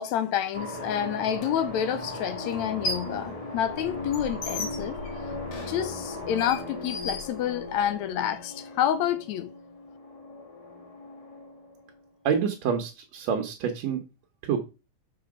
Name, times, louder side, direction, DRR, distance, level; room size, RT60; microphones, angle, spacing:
voice 1, 0.0-5.3 5.7-9.5, left 10 dB, 80° left, 1.8 m, -29 dB
sound 1, 0.5-12.0, left 2 dB, 35° left, 0.5 m, -38 dB
sound 2, 1.4-1.5 2.5-3.2 3.6-7.9, left 2 dB, 55° left, 2.7 m, -36 dB
voice 2, 12.2-14.0 14.4-14.6, right 7 dB, 65° right, 2.1 m, -27 dB
6.9 x 6.0 x 5.0 m
omnidirectional pair, 3.6 m